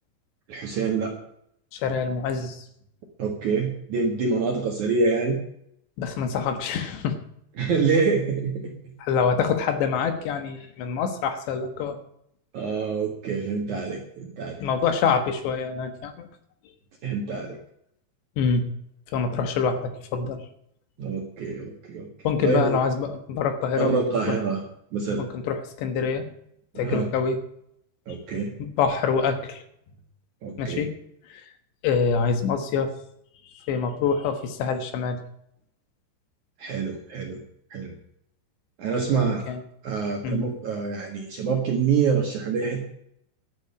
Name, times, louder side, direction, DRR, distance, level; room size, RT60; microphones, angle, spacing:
voice 1, 0.5-1.1 3.2-5.4 7.6-8.7 12.5-14.6 17.0-17.6 21.0-22.1 22.4-22.8 23.8-24.6 24.9-25.2 26.7-27.1 28.1-28.5 30.4-30.9 36.6-37.4 37.7-37.9 38.8-39.4 39.8-42.8, right 5 dB, 60° right, 2 dB, 2.2 m, -26 dB
voice 2, 1.7-2.6 6.0-7.2 9.0-12.0 14.6-16.3 18.4-18.7 19.1-20.4 22.2-24.4 25.2-26.3 26.8-27.4 28.1-28.2 28.6-29.6 30.6-30.9 31.3-31.4 31.8-32.9 33.7-35.2 39.1-39.6 40.2-40.5, left 6 dB, 70° left, 7 dB, 3.3 m, -26 dB
11.5 x 9.0 x 8.8 m, 0.73 s
omnidirectional pair, 5.5 m